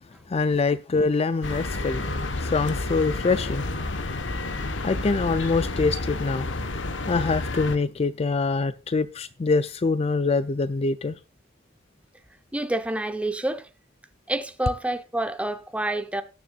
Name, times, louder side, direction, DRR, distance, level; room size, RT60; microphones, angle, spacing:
voice 1, 0.3-2.1 2.4-3.6 4.8-6.5 7.1-11.2, left 4 dB, 30° left, 0.4 m, -24 dB
sound 1, 1.4-7.8, left 2 dB, 70° left, 1.1 m, -30 dB
voice 2, 12.5-13.7 14.3-16.2, right 1 dB, 5° right, 0.8 m, -28 dB
18.0 x 6.9 x 2.4 m
head